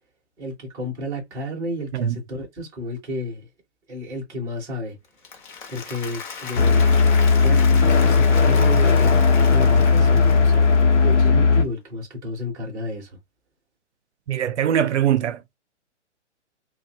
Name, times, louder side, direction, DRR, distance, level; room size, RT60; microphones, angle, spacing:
voice 1, 0.4-3.5 3.9-5.0 5.7-6.8 7.4-10.7 11.0-13.2, left 1 dB, 10° right, 0.5 m, -31 dB
Applause, 5.0-11.3, left 6 dB, 45° left, 0.6 m, -37 dB
sound 1, 6.6-11.6, left 5 dB, 85° left, 0.7 m, -16 dB
voice 2, 14.3-15.5, right 10 dB, 70° right, 0.5 m, -22 dB
2.5 x 2.0 x 2.7 m
figure-of-eight pair, 130°, 36 cm